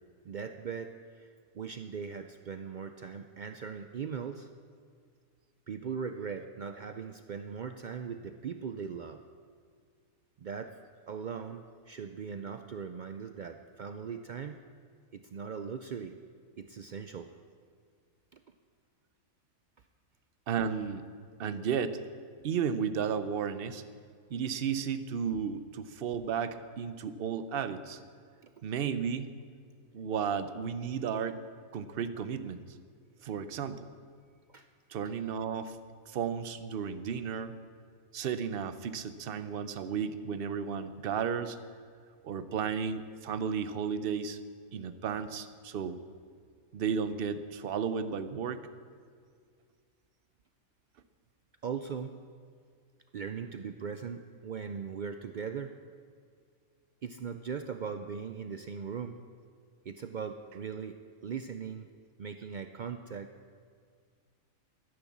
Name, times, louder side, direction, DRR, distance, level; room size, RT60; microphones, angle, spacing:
voice 1, 0.2-4.5 5.7-9.2 10.4-10.7 11.1-14.6 15.1-16.2 16.6-17.3 18.3-18.4 28.4-28.5 34.5-34.7 35.0-35.1 51.6-52.2 53.1-55.8 57.0-59.2 59.9-61.9 62.2-63.3, right 6 dB, 90° right, 8 dB, 0.4 m, -39 dB
voice 2, 20.5-21.1 21.4-22.0 22.4-23.8 24.3-28.0 28.6-29.3 29.9-31.4 31.7-32.6 33.2-33.9 34.9-35.8 36.1-37.6 38.1-41.6 42.2-44.4 44.7-46.0 46.7-48.6, right 7 dB, 55° right, 12 dB, 0.7 m, -33 dB
13.0 x 10.0 x 7.2 m, 2.1 s
omnidirectional pair, 1.5 m